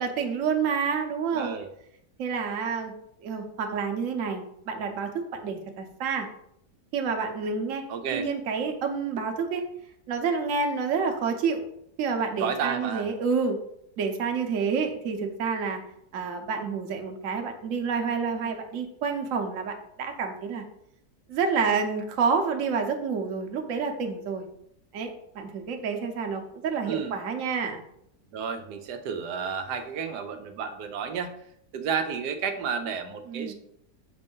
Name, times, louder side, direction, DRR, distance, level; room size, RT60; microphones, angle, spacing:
voice 1, 0.0-1.5 2.2-2.9 3.2-5.1 5.4-6.3 6.9-7.8 8.1-9.6 10.1-11.6 12.0-13.6 14.0-15.8 16.1-20.6 21.3-24.5 24.9-27.8 33.3-33.5, right 5 dB, 60° right, 4 dB, 1.1 m, -28 dB
voice 2, 1.3-1.7 7.9-8.3 12.4-13.1 26.9-27.1 28.3-31.3 31.7-33.5, right 6 dB, 85° right, 6 dB, 1.2 m, -31 dB
6.8 x 2.7 x 5.3 m, 0.72 s
omnidirectional pair, 1.7 m